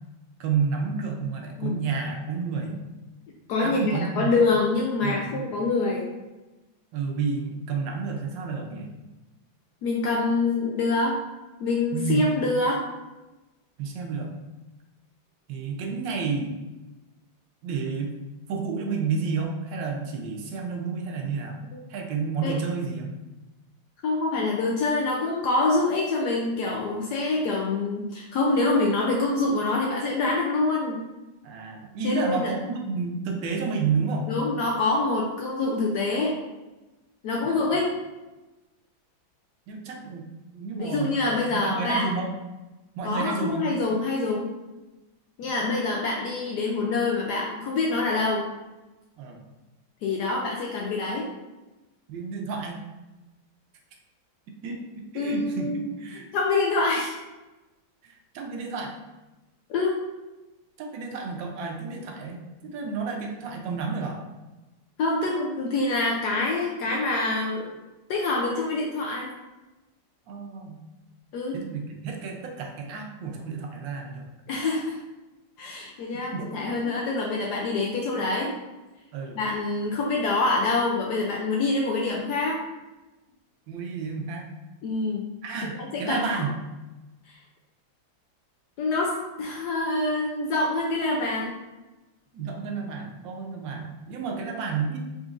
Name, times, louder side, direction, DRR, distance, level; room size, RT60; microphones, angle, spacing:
voice 1, 0.4-2.8 3.6-4.3 5.0-5.5 6.9-8.9 11.9-12.2 13.8-14.3 15.5-16.6 17.6-18.1 18.5-21.6 21.9-23.1 31.4-34.3 39.7-41.1 41.5-42.3 43.0-43.6 45.4-45.5 49.2-49.4 52.1-52.8 54.6-54.8 55.1-56.3 58.0-58.9 60.8-64.2 70.3-70.8 71.5-74.2 76.3-76.5 76.8-77.0 79.1-79.4 83.7-84.5 85.4-86.5 92.3-95.0, right 5 dB, 75° right, 1 dB, 1.3 m, -30 dB
voice 2, 3.5-6.1 9.8-11.2 11.6-12.9 21.7-21.8 22.4-22.6 24.0-31.0 32.0-32.5 34.3-36.4 37.2-37.9 40.7-42.1 43.0-44.5 45.4-48.5 50.0-51.3 55.2-55.8 56.3-57.1 59.7-60.0 65.0-67.7 68.1-69.3 71.3-71.6 74.5-75.0 75.6-78.5 79.4-82.6 84.8-85.3 85.6-86.4 88.8-91.6, left 3 dB, 75° left, -2 dB, 0.9 m, -25 dB
3.8 x 3.6 x 2.4 m, 1.1 s
omnidirectional pair, 2.2 m